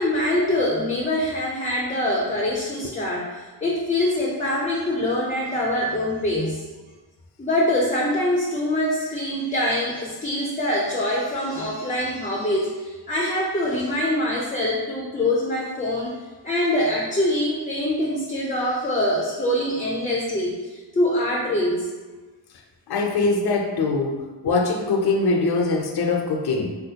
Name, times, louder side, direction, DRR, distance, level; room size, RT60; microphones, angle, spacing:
voice 1, 0.0-6.6 7.4-16.1 16.4-21.9, left 1 dB, 15° left, -3 dB, 0.5 m, -24 dB
voice 2, 22.9-26.7, left 3 dB, 60° left, 3 dB, 0.6 m, -22 dB
3.4 x 2.4 x 2.8 m, 1.3 s
cardioid pair, 65°, 44 cm